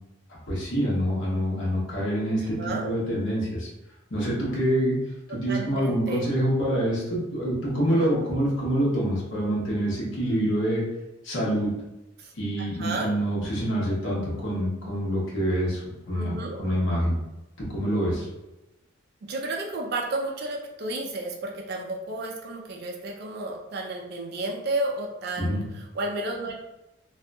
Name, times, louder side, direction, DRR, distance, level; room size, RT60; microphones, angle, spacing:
voice 1, 0.5-3.7 4.1-5.0 5.3-10.8 11.2-11.7 12.3-15.8 16.1-17.1 17.7-18.3 25.4-25.6, equal, 60° left, -5 dB, 1.0 m, -26 dB
voice 2, 2.4-2.9 5.5-6.3 7.9-8.2 12.2-13.1 16.1-16.6 19.2-26.5, right 2 dB, 50° right, 1 dB, 0.3 m, -32 dB
2.6 x 2.5 x 2.2 m, 0.96 s
head